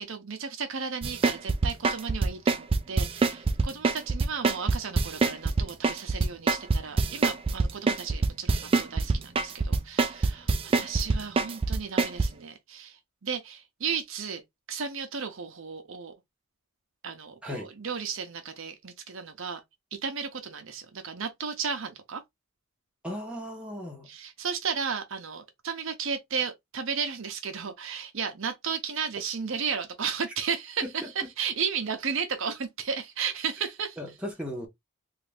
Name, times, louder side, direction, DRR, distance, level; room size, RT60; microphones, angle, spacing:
voice 1, 0.0-14.4 14.7-16.1 17.0-19.6 19.9-22.2 24.1-31.1 31.4-34.0, right 6 dB, 60° right, 0.7 m, -34 dB
sound 1, 1.0-12.3, right 3 dB, 25° right, 0.3 m, -24 dB
voice 2, 23.0-24.1 34.0-34.7, equal, 5° right, 0.9 m, -36 dB
3.2 x 2.5 x 3.2 m
head